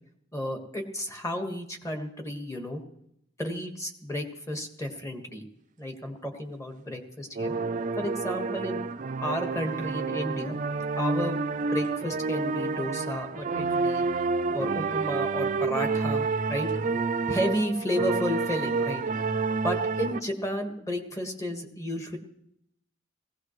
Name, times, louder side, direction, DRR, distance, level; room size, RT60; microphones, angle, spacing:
voice 1, 0.3-2.8 3.4-5.5 5.8-7.5 8.0-8.8 9.2-10.6 11.0-14.0 14.5-16.7 17.3-19.0 19.6-22.2, equal, 15° left, 4 dB, 1.6 m, -32 dB
sound 1, 7.4-20.2, right 4 dB, 45° right, 0.5 m, -29 dB
18.5 x 16.5 x 3.2 m, 0.75 s
head